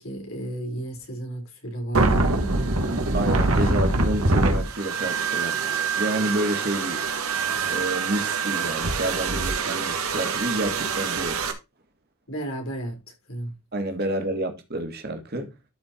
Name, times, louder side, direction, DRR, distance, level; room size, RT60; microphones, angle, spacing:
voice 1, 0.0-2.7 3.6-3.7 12.3-13.0 13.3-13.5, right 1 dB, 70° left, 3.6 m, -33 dB
sound 1, 1.9-11.5, right 3 dB, 85° right, 1.7 m, -24 dB
voice 2, 3.1-5.6 6.0-7.1 7.7-11.4 13.7-15.5, right 1 dB, 45° right, 1.9 m, -29 dB
12.0 x 4.4 x 4.4 m
head